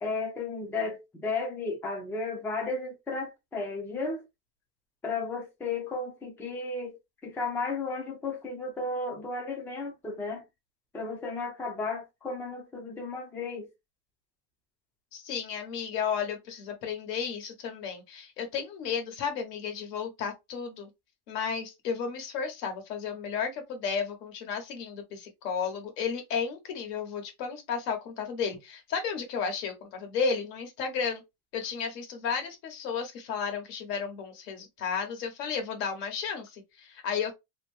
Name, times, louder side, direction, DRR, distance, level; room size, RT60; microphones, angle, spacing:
voice 1, 0.0-4.2 5.0-10.4 10.9-13.7, left 3 dB, 5° left, 0.3 m, -34 dB
voice 2, 15.1-20.9 21.3-31.2 31.5-37.3, left 6 dB, 85° left, 1.3 m, -33 dB
2.8 x 2.1 x 3.2 m
supercardioid pair, 125°, 47 cm